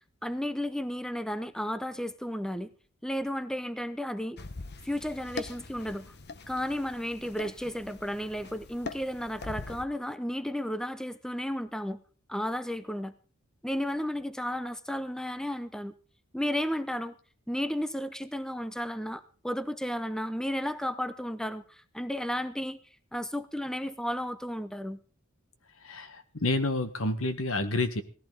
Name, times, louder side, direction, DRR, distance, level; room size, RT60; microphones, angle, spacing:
voice 1, 0.2-2.7 3.0-4.4 4.8-6.1 6.5-12.0 12.3-13.1 13.6-15.9 16.3-17.1 17.5-22.8 23.1-25.0, equal, 5° left, 12 dB, 0.7 m, -33 dB
sound 1, 4.4-9.8, left 3 dB, 50° left, 1.1 m, -43 dB
voice 2, 26.4-28.0, left 2 dB, 70° left, 10 dB, 1.6 m, -28 dB
18.0 x 14.5 x 4.0 m, 0.38 s
head